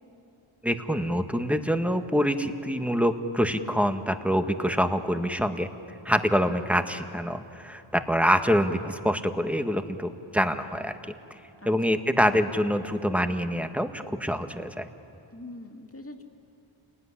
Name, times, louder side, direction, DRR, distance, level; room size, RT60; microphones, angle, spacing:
voice 1, 0.6-5.7 6.0-10.9 11.6-14.9, equal, 5° right, 7 dB, 1.5 m, -25 dB
voice 2, 11.6-12.0 15.3-16.2, left 1 dB, 25° left, 3 dB, 2.5 m, -43 dB
28.0 x 20.0 x 10.0 m, 2.7 s
wide cardioid pair, 55°, 49 cm